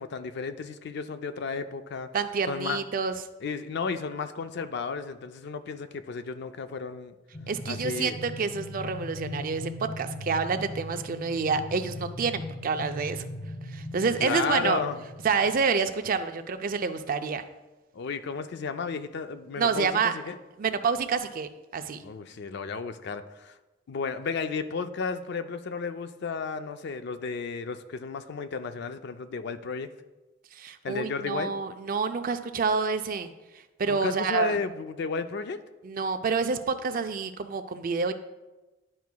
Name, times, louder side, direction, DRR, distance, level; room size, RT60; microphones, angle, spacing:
voice 1, 0.0-2.1 2.5-2.8 3.4-7.1 7.6-8.2 14.2-15.0 17.9-20.4 22.0-23.6 23.9-29.9 30.8-31.5 33.9-35.6, left 5 dB, 55° left, 10 dB, 0.4 m, -33 dB
voice 2, 2.1-3.2 7.5-13.2 13.7-14.8 15.2-17.4 19.6-20.1 20.6-22.0 30.5-33.3 33.8-34.6 35.8-38.1, right 5 dB, 45° right, 8 dB, 0.4 m, -28 dB
sound 1, 7.3-15.5, left 1 dB, 35° left, 0.9 m, -39 dB
11.0 x 4.6 x 2.2 m, 1.1 s
head